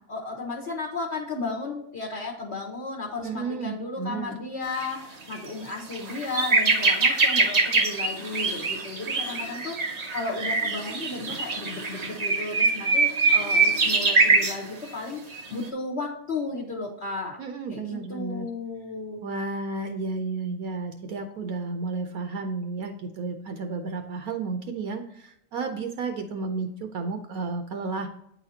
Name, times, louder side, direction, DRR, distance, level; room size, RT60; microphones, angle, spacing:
voice 1, 0.0-17.4 17.7-19.2, left 3 dB, 45° left, -3 dB, 1.3 m, -34 dB
voice 2, 3.2-4.3 17.4-18.5 19.2-28.1, right 4 dB, 70° right, 5 dB, 1.1 m, -32 dB
sound 1, 4.7-4.9 5.3-5.4 5.7-14.6 15.3-15.5, right 3 dB, 45° right, 0.5 m, -23 dB
9.0 x 4.1 x 2.8 m, 0.75 s
omnidirectional pair, 1.7 m